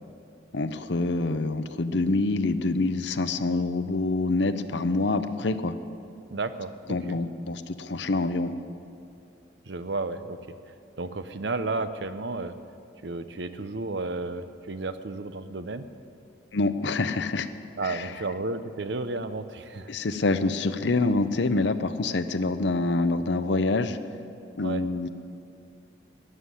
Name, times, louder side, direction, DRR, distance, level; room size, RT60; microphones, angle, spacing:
voice 1, 0.5-5.7 6.9-8.5 16.5-17.5 17.8-18.1 19.9-24.0 24.6-25.1, left 3 dB, 65° left, 11 dB, 0.7 m, -26 dB
voice 2, 6.3-7.2 9.7-10.6 11.0-12.6 13.0-15.9 17.8-19.9 24.6-24.8, right 3 dB, 65° right, 11 dB, 0.7 m, -32 dB
13.0 x 9.3 x 9.8 m, 2.5 s
head